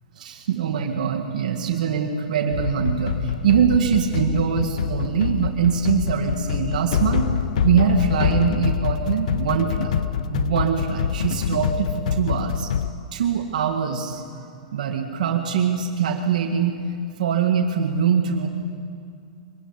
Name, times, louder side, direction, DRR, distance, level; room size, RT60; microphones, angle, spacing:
voice 1, 0.2-7.3 7.6-9.9 10.3-12.7 13.1-14.5 14.7-16.8 17.2-18.5, right 7 dB, 70° right, 2 dB, 1.9 m, -23 dB
sound 1, 2.5-12.9, left 8 dB, 60° left, 0.7 m, -25 dB
23.0 x 15.5 x 9.8 m, 2.4 s
hypercardioid pair, 160°, 4 cm